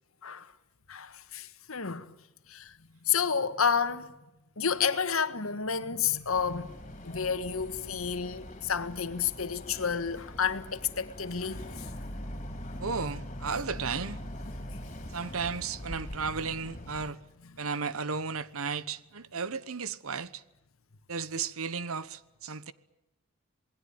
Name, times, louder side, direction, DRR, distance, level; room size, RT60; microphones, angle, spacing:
voice 1, 0.9-2.1 2.5-2.7 3.0-4.1 4.6-11.9, left 6 dB, 80° left, 1.5 m, -30 dB
Boat Water vehicle, 6.3-17.1, equal, 35° left, 3.7 m, -42 dB
voice 2, 12.8-14.2 15.1-17.2 17.6-20.4 21.1-22.7, right 5 dB, 85° right, 1.2 m, -34 dB
28.0 x 20.0 x 8.9 m
head